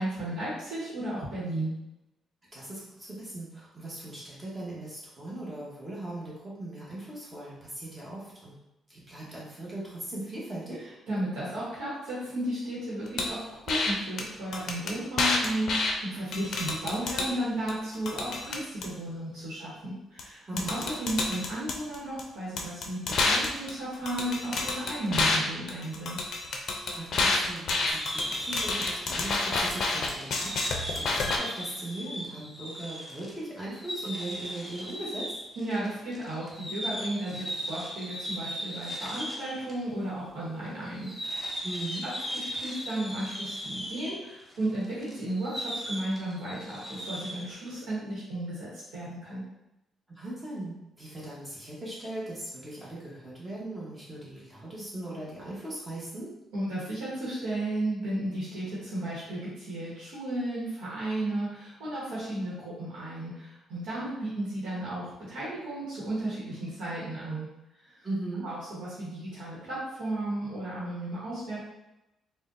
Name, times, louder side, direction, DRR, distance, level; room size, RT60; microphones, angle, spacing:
voice 1, 0.0-1.8 11.1-26.2 35.6-41.5 42.0-42.1 42.6-49.5 56.5-67.5 67.8-67.9 68.4-71.6, right 1 dB, 90° right, -8 dB, 1.0 m, -34 dB
voice 2, 2.5-8.5 8.9-10.8 20.5-20.8 26.9-30.6 30.9-35.4 41.6-42.0 50.1-56.3 68.0-68.5, right 1 dB, 20° right, -7 dB, 1.0 m, -39 dB
sound 1, 13.2-13.3 13.7-13.9 14.2-14.3 14.5-15.9 16.3-17.3 17.7-18.9 20.2-20.3 20.6-22.2 22.6-25.4 25.7-31.4, left 3 dB, 65° left, 0.4 m, -29 dB
sound 2, 27.9-39.8 40.0-40.1 40.8-47.5, equal, 5° right, 0.7 m, -38 dB
3.7 x 2.1 x 2.5 m, 0.92 s
cardioid pair, 90°, 0 cm